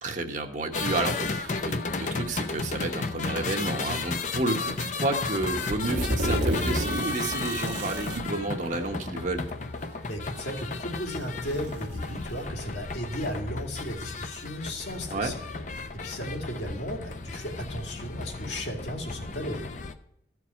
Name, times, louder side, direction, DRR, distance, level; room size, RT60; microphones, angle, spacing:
voice 1, 0.0-9.5 15.1-15.3, right 2 dB, 40° right, 3 dB, 1.2 m, -31 dB
sound 1, 0.7-19.9, left 3 dB, 40° left, 0.6 m, -34 dB
sound 2, 4.4-4.7 5.3-8.3 9.4-9.5 10.4-10.5 11.0-12.4, right 1 dB, 75° right, 1.5 m, -32 dB
voice 2, 10.0-15.5 16.0-19.7, equal, 70° left, 0 dB, 2.5 m, -35 dB
14.0 x 4.8 x 8.2 m, 0.78 s
head